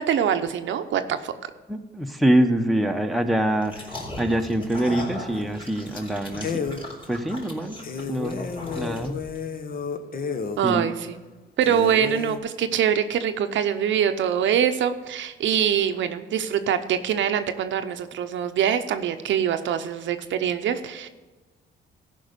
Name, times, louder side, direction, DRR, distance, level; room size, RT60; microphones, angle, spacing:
voice 1, 0.0-1.3 10.6-11.2 11.6-21.1, right 9 dB, 70° right, 8 dB, 0.8 m, -24 dB
voice 2, 1.7-3.8 4.2-6.6 7.1-7.8 8.1-8.4 8.8-9.2 10.6-10.9, right 1 dB, ahead, 4 dB, 0.9 m, -24 dB
sound 1, 3.6-9.4, left 1 dB, 25° left, 3.2 m, -38 dB
sound 2, 5.3-5.7 6.0-6.1 6.4-6.8 7.3-7.4 7.8-10.6 11.1-11.2 11.6-12.4, left 6 dB, 45° left, 1.0 m, -32 dB
13.5 x 5.4 x 6.7 m, 1.3 s
cardioid pair, 90°, 20 cm